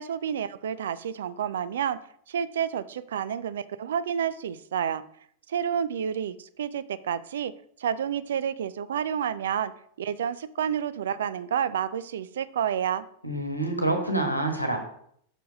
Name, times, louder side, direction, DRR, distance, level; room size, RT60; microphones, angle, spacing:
voice 1, 0.0-2.0 2.3-5.0 5.5-7.5 7.8-9.7 10.0-13.0, right 8 dB, 60° right, 15 dB, 0.4 m, -29 dB
voice 2, 13.2-14.8, right 2 dB, 90° left, 3 dB, 1.3 m, -27 dB
6.2 x 4.5 x 5.2 m, 0.67 s
figure-of-eight pair, 90°, 0 cm